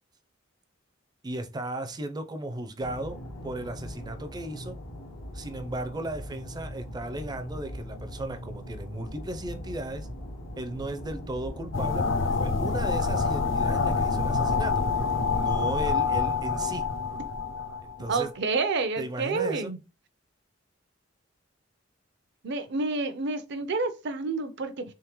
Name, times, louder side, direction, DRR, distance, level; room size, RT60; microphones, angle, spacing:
voice 1, 1.2-4.8 5.3-10.1 10.6-14.8 15.3-16.9 18.0-18.3 19.0-19.7, right 1 dB, 20° right, 0.5 m, -36 dB
sound 1, 2.8-15.5, equal, 90° left, 0.9 m, -40 dB
sound 2, 11.7-18.1, left 4 dB, 70° left, 0.5 m, -26 dB
voice 2, 18.1-19.8 22.4-24.8, right 3 dB, 60° right, 0.6 m, -29 dB
3.6 x 3.6 x 3.0 m
head